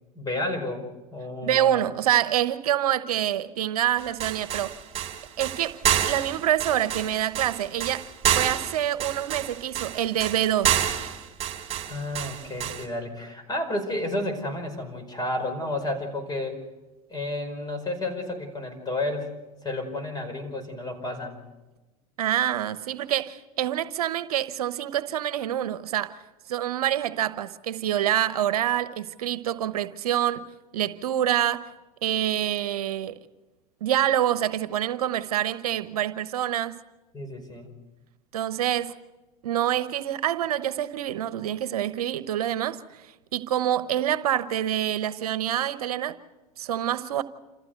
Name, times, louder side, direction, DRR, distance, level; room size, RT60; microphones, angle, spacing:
voice 1, 0.1-1.9 11.9-16.6 17.1-19.3 19.6-21.4 37.1-37.7, left 1 dB, 20° left, 5.3 m, -31 dB
voice 2, 1.4-4.7 5.4-8.0 8.4-10.8 22.2-26.2 26.5-30.4 30.7-31.7 32.0-33.2 33.8-36.7 38.3-38.9 39.4-43.1 43.3-46.2 46.6-47.2, right 11 dB, 80° right, 1.0 m, -26 dB
sound 1, 4.0-12.8, right 10 dB, 30° right, 3.1 m, -28 dB
27.5 x 15.0 x 8.1 m
hypercardioid pair, 100°, 19 cm